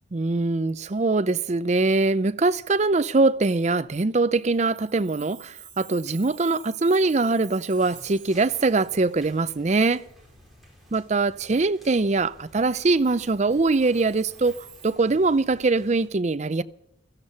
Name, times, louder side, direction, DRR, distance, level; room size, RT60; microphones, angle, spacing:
voice 1, 0.1-10.0 10.9-16.6, right 3 dB, 35° right, 0.5 m, -22 dB
Chime, 4.3-10.4 10.9-11.0 12.6-14.9, right 9 dB, 65° right, 6.5 m, -49 dB
sound 1, 7.7-16.1, equal, ahead, 4.8 m, -53 dB
16.5 x 14.0 x 5.7 m
head